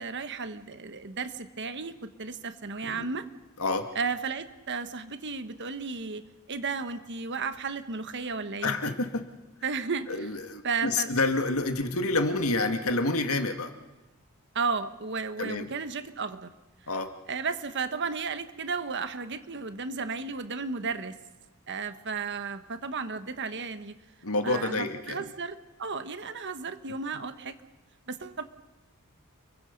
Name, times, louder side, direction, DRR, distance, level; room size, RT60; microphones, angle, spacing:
voice 1, 0.0-3.3 3.9-8.8 9.6-10.1 10.6-11.1 14.5-16.5 17.3-21.1 21.7-23.9 24.4-27.5 28.1-28.4, right 4 dB, 55° right, 10 dB, 1.3 m, -33 dB
voice 2, 3.6-3.9 8.6-9.3 10.1-13.7 15.4-15.7 16.9-17.1 24.2-25.3, left 2 dB, 75° left, 6 dB, 2.1 m, -28 dB
30.0 x 23.0 x 5.4 m, 1.1 s
head